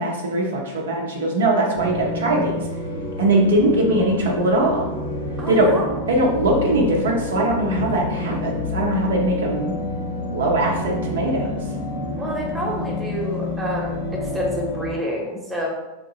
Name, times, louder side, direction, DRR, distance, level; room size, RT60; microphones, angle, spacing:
voice 1, 0.0-2.6 3.2-4.9 5.5-5.7 6.1-9.7 10.3-11.5, right 1 dB, 65° right, -1 dB, 0.6 m, -21 dB
sound 1, 1.7-14.9, left 2 dB, 60° left, 0.6 m, -28 dB
voice 2, 5.4-5.9 12.2-15.7, equal, 10° right, -2 dB, 0.9 m, -28 dB
3.7 x 2.8 x 2.8 m, 1.0 s
figure-of-eight pair, 90°, 0 cm